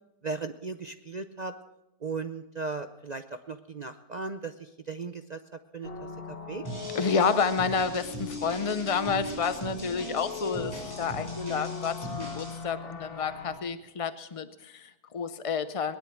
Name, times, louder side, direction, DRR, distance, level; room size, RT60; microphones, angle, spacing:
voice 1, 0.2-1.5 2.0-5.4 5.7-5.9 6.3-6.6, right 4 dB, 55° right, 8 dB, 0.4 m, -37 dB
sound 1, 5.8-13.6, left 4 dB, 40° left, 1.4 m, -39 dB
sound 2, 6.6-12.6, right 1 dB, 10° left, 5.5 m, -41 dB
voice 2, 6.9-15.9, left 5 dB, 60° left, 12 dB, 0.3 m, -30 dB
19.5 x 11.5 x 6.2 m, 0.91 s
omnidirectional pair, 1.6 m